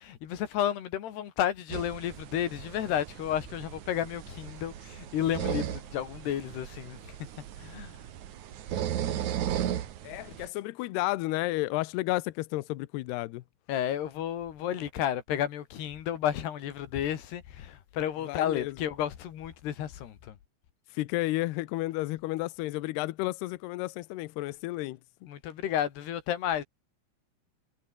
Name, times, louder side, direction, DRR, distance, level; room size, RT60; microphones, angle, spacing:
voice 1, 0.0-7.2 7.6-8.0 13.7-20.4 25.3-26.6, left 10 dB, 60° left, 4.0 m, -32 dB
sound 1, 1.7-10.5, right 10 dB, 75° right, 1.7 m, -36 dB
voice 2, 10.0-13.4 18.3-18.7 20.9-25.0, left 18 dB, 85° left, 2.3 m, -32 dB
omnidirectional pair, 5.9 m